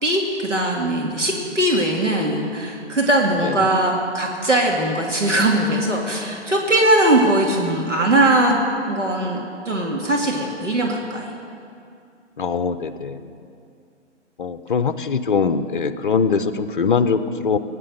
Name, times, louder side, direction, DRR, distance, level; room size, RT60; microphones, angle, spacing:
voice 1, 0.0-11.3, right 1 dB, 85° right, -1 dB, 2.3 m, -20 dB
voice 2, 12.4-13.2 14.4-17.6, left 5 dB, 45° left, 10 dB, 0.8 m, -22 dB
18.0 x 9.8 x 6.6 m, 2.4 s
figure-of-eight pair, 135°, 36 cm